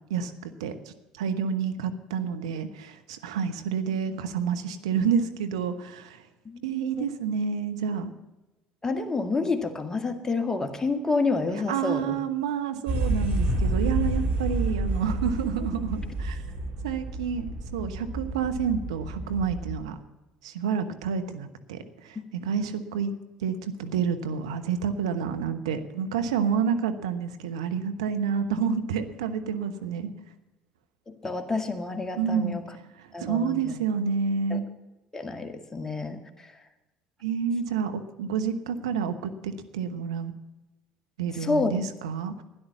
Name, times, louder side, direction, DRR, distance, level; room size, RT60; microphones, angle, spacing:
voice 1, 0.1-6.2 6.6-8.1 11.7-16.4 16.8-20.0 20.4-23.1 23.4-30.1 32.2-32.5 33.2-34.6 37.2-40.3 41.2-42.4, right 6 dB, 85° right, 8 dB, 1.0 m, -29 dB
voice 2, 6.5-7.1 8.8-12.2 31.1-32.6 33.1-33.7 34.5-34.6 35.1-36.6 41.4-41.7, left 3 dB, 20° left, 6 dB, 2.0 m, -29 dB
sound 1, 12.9-19.7, right 2 dB, 55° right, 3.7 m, -29 dB
12.5 x 10.5 x 7.1 m, 1.1 s
hypercardioid pair, 65°, 3 cm